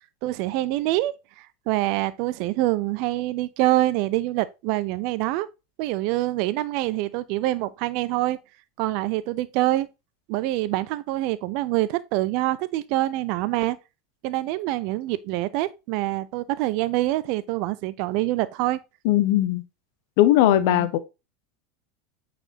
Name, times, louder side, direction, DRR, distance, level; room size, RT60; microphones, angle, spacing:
voice 1, 0.2-5.5 5.8-8.4 8.8-9.9 10.3-13.8 14.2-18.8 20.4-20.9, right 16 dB, 55° right, 0.5 m, -25 dB
voice 2, 19.0-19.6 20.2-21.0, left 14 dB, 60° left, 0.8 m, -19 dB
8.9 x 4.3 x 2.8 m
figure-of-eight pair, 80°, 0 cm